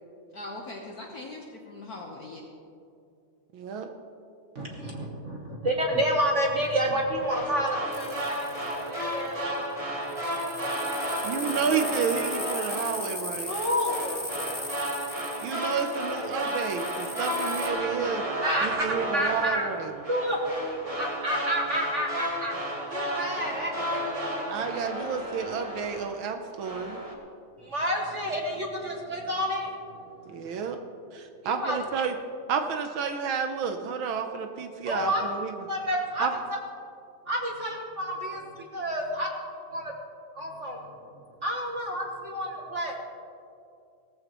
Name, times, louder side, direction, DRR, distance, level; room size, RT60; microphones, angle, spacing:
voice 1, 0.3-2.4, left 2 dB, 50° left, -1 dB, 1.3 m, -40 dB
voice 2, 3.5-3.9 11.2-13.5 15.4-18.3 18.6-19.9 24.5-27.0 30.3-30.8 31.1-32.1 32.5-35.5 36.2-36.3, right 6 dB, 75° right, 6 dB, 1.5 m, -30 dB
voice 3, 4.5-9.8 10.1-10.6 13.5-14.3 18.4-19.7 20.1-20.4 21.0-22.5 22.9-24.0 27.6-30.5 31.4-31.8 34.8-35.2 35.7-36.3 37.3-39.3 39.7-39.9 40.3-40.8 41.4-42.9, equal, 45° right, 0 dB, 1.2 m, -30 dB
sound 1, 7.2-26.3 26.6-27.1, equal, 20° right, 1.6 m, -33 dB
sound 2, 7.9-9.1 10.1-17.7, left 2 dB, 25° left, 0.4 m, -38 dB
17.5 x 14.5 x 3.0 m, 2.5 s
omnidirectional pair, 2.3 m